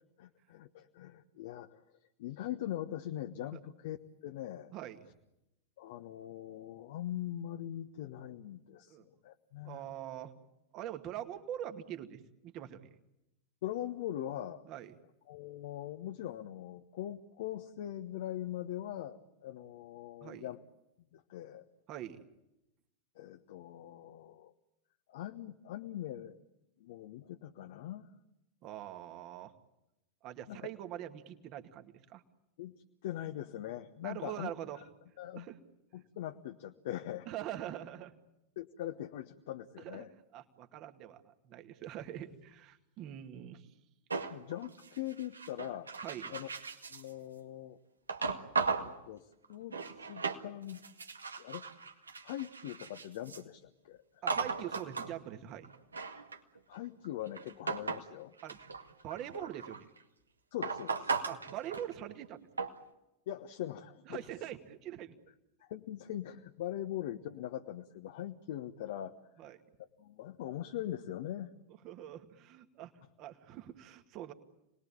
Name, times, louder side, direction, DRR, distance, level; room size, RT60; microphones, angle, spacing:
voice 1, 0.2-1.8 2.2-4.0 4.2-4.7 5.8-9.8 13.6-14.6 15.3-20.6 21.1-21.6 23.1-24.5 25.1-26.4 26.8-28.1 30.5-30.7 32.6-32.8 33.0-34.5 35.2-35.5 35.9-37.3 38.6-40.1 44.3-45.9 46.3-46.5 46.9-47.8 48.8-49.8 50.1-50.8 51.4-51.6 52.2-54.2 56.7-58.3 60.5-61.1 63.3-64.3 65.6-69.1 70.0-71.5, left 12 dB, 55° left, 7 dB, 1.2 m, -41 dB
voice 2, 4.7-5.0 8.9-9.1 9.6-10.3 10.7-12.9 14.7-14.9 20.2-20.5 21.9-22.2 28.6-29.5 30.2-32.2 34.0-34.8 35.3-35.5 37.3-38.1 39.8-40.1 40.3-43.7 44.2-44.4 46.0-46.3 54.2-55.7 58.4-58.6 59.0-59.9 61.3-62.8 64.1-65.1 69.4-69.6 71.8-72.9 73.2-74.3, right 11 dB, 40° right, 7 dB, 2.1 m, -44 dB
sound 1, 44.1-47.1 48.1-48.9 49.4-50.4 50.7-53.4 54.3-55.1 55.6-58.1 58.4-60.0 60.6-62.3 62.6-62.8, right 4 dB, 75° right, 1.9 m, -37 dB
29.5 x 21.0 x 8.9 m, 0.91 s
figure-of-eight pair, 90°, 0 cm